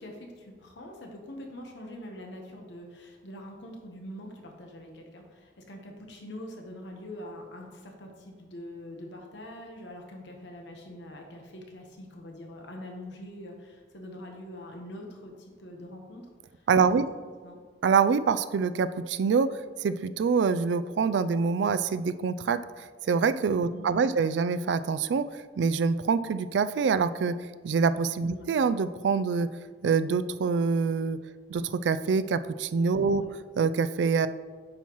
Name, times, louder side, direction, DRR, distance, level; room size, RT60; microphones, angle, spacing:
voice 1, 0.0-16.3 17.0-17.1 17.4-17.6 23.7-24.2 28.3-28.5 33.0-33.3, left 1 dB, 80° left, 2 dB, 1.0 m, -44 dB
voice 2, 16.7-17.0 17.8-19.5 19.8-25.2 25.6-27.3 27.6-29.5 29.8-31.2 31.5-33.2 33.6-34.3, right 5 dB, 80° right, 13 dB, 0.3 m, -25 dB
8.7 x 5.5 x 3.0 m, 1.5 s
head